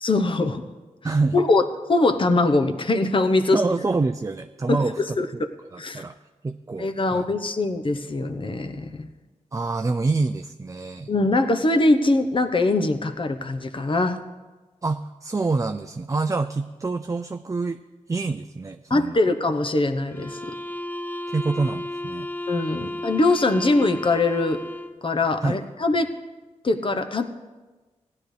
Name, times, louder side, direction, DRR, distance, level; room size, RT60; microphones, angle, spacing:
voice 1, 0.0-0.6 1.3-1.6 1.9-3.6 4.7-5.3 5.8-6.0 6.8-9.1 11.1-14.2 18.9-20.5 22.5-24.6 25.0-26.1 26.6-27.2, left 2 dB, 45° left, 7 dB, 0.9 m, -22 dB
voice 2, 1.0-1.4 3.5-5.4 5.7-6.2 6.4-7.3 9.5-11.1 14.8-17.8 18.1-19.2 21.3-22.3 22.8-22.9 25.4-25.6, right 3 dB, 25° right, 8 dB, 0.4 m, -26 dB
sound 1, 20.1-25.0, left 1 dB, 15° left, 0.6 m, -33 dB
16.5 x 10.5 x 3.3 m, 1.2 s
cardioid pair, 50°, 13 cm